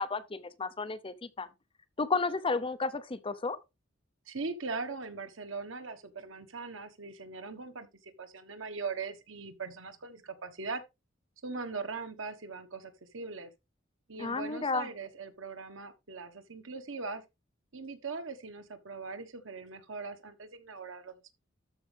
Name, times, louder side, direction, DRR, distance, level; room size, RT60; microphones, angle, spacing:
voice 1, 0.0-1.5 2.0-3.6 14.2-14.9, left 4 dB, 25° left, 0.7 m, -32 dB
voice 2, 4.3-10.8 11.4-13.5 14.1-17.2 17.7-21.3, right 4 dB, 80° right, 1.4 m, -40 dB
13.0 x 5.0 x 3.4 m
head